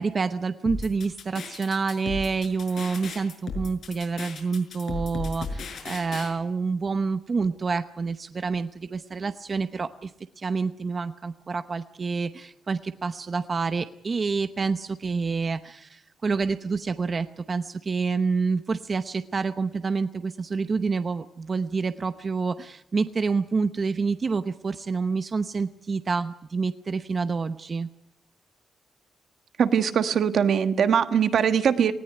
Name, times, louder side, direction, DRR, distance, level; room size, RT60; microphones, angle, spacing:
voice 1, 0.0-10.1 10.4-27.9, right 4 dB, 35° right, 10 dB, 0.8 m, -28 dB
sound 1, 0.6-6.3, left 4 dB, 70° left, 6.0 m, -35 dB
voice 2, 29.6-31.9, right 7 dB, 65° right, 10 dB, 1.5 m, -21 dB
19.0 x 17.5 x 9.8 m, 0.75 s
wide cardioid pair, 135°, 0 cm